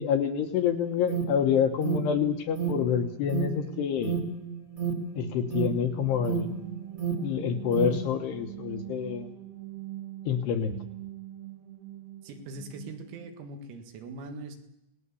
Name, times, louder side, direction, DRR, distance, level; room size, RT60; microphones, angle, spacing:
voice 1, 0.0-4.2 5.2-6.5 7.2-9.3 10.3-10.8, left 8 dB, 70° left, 5 dB, 2.7 m, -27 dB
Alarm, 0.6-8.0, right 7 dB, 20° right, 1.3 m, -33 dB
sound 1, 5.6-13.4, right 14 dB, 65° right, 4.0 m, -43 dB
voice 2, 12.2-14.6, right 2 dB, 85° right, 5 dB, 4.7 m, -41 dB
27.5 x 19.0 x 7.0 m, 0.83 s
omnidirectional pair, 6.0 m